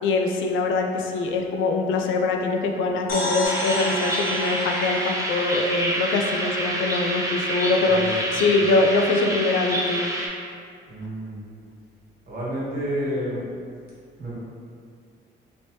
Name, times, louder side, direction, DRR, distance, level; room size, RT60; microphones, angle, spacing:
voice 1, 0.0-10.1, left 3 dB, 80° left, 3 dB, 0.4 m, -23 dB
sound 1, 3.1-6.7, left 1 dB, 50° left, 0.8 m, -32 dB
sound 2, 3.4-10.3, right 1 dB, 15° right, 0.6 m, -27 dB
voice 2, 7.8-8.6 10.9-11.5 12.2-13.4 14.2-14.3, equal, 50° right, -8 dB, 1.4 m, -30 dB
3.2 x 3.0 x 2.8 m, 2.2 s
cardioid pair, 90°, 20 cm